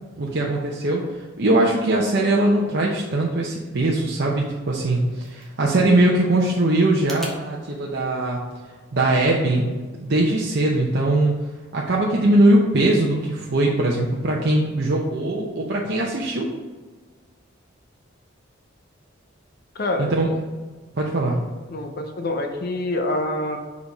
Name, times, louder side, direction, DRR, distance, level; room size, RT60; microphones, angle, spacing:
voice 1, 0.2-1.1 1.4-8.4 8.9-9.7 10.0-11.3 11.7-16.5 20.0-20.3 20.9-21.4, right 1 dB, 55° right, -2 dB, 0.7 m, -21 dB
sound 1, 4.7-7.4, equal, ahead, 0.9 m, -43 dB
voice 2, 19.7-20.1 21.7-23.6, left 2 dB, 50° left, 4 dB, 0.6 m, -26 dB
5.0 x 4.1 x 5.2 m, 1.4 s
head